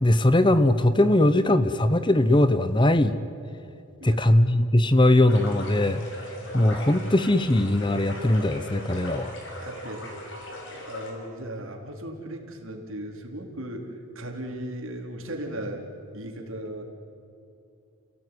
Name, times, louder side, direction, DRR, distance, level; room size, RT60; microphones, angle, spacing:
voice 1, 0.0-3.2 4.0-6.1 6.5-9.3, left 1 dB, 20° left, 12 dB, 0.8 m, -20 dB
sound 1, 5.3-11.1, left 1 dB, 60° left, 5.5 m, -39 dB
voice 2, 9.6-10.3 10.7-15.8 16.1-16.8, right 1 dB, 70° right, 2 dB, 3.8 m, -37 dB
30.0 x 17.0 x 9.8 m, 2.8 s
head